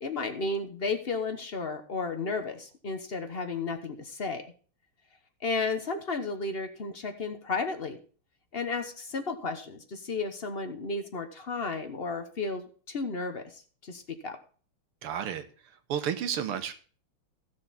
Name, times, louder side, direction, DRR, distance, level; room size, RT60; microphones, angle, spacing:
voice 1, 0.0-4.4 5.4-8.0 8.5-14.4, left 3 dB, 50° left, 7 dB, 0.7 m, -33 dB
voice 2, 15.0-15.4 15.9-16.7, right 9 dB, 80° right, 9 dB, 1.9 m, -31 dB
15.5 x 6.8 x 4.1 m, 0.41 s
omnidirectional pair, 2.4 m